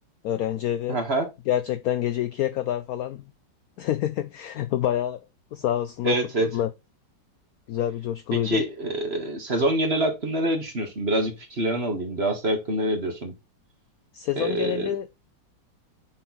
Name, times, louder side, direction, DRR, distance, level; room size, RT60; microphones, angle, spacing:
voice 1, 0.2-1.0 1.5-3.3 3.8-5.2 5.5-6.7 7.7-8.6 14.1-15.2, left 11 dB, 75° left, 0.8 m, -27 dB
voice 2, 0.9-1.3 6.0-6.5 8.3-13.3 14.4-14.9, right 1 dB, 35° right, 1.7 m, -26 dB
7.6 x 4.1 x 3.9 m
omnidirectional pair, 2.0 m